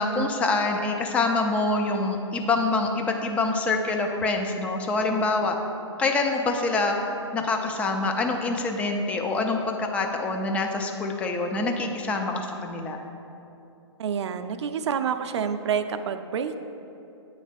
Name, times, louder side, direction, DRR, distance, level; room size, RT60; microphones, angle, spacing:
voice 1, 0.0-5.6 6.0-7.0 7.3-13.0, left 3 dB, 10° left, 3 dB, 0.3 m, -25 dB
voice 2, 14.0-16.6, right 7 dB, 60° right, 9 dB, 0.4 m, -28 dB
8.6 x 3.2 x 5.1 m, 2.8 s
hypercardioid pair, 135°, 16 cm